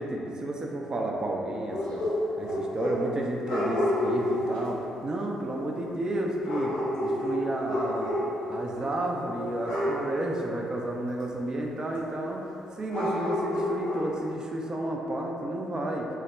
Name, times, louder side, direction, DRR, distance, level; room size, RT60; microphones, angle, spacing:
voice 1, 0.0-2.0 2.4-6.7 7.0-8.1 8.5-12.4 12.8-16.1, right 1 dB, 30° right, 0 dB, 0.4 m, -31 dB
sound 1, 1.7-3.1 3.4-4.7 6.4-8.5 8.7-9.1 9.6-10.1 12.9-14.2, left 1 dB, 65° left, 0.5 m, -29 dB
2.3 x 2.0 x 3.1 m, 2.7 s
hypercardioid pair, 45°, 2 cm